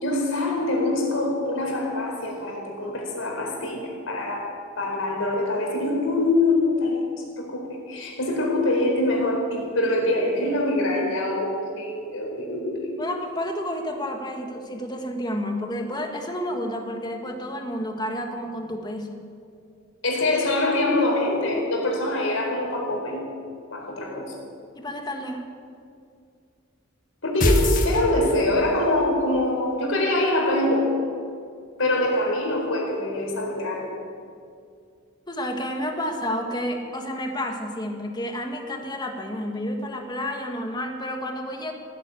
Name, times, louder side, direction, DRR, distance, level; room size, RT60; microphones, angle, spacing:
voice 1, 0.0-4.5 4.8-7.0 7.4-12.9 20.0-23.2 23.7-24.3 27.2-30.9 31.8-33.9, left 2 dB, 80° left, -1 dB, 4.4 m, -24 dB
voice 2, 13.0-19.3 24.7-25.5 35.3-41.7, equal, 20° left, 3 dB, 1.6 m, -30 dB
sound 1, 27.4-28.7, left 1 dB, 40° left, 1.6 m, -22 dB
16.0 x 9.7 x 8.4 m, 2.3 s
head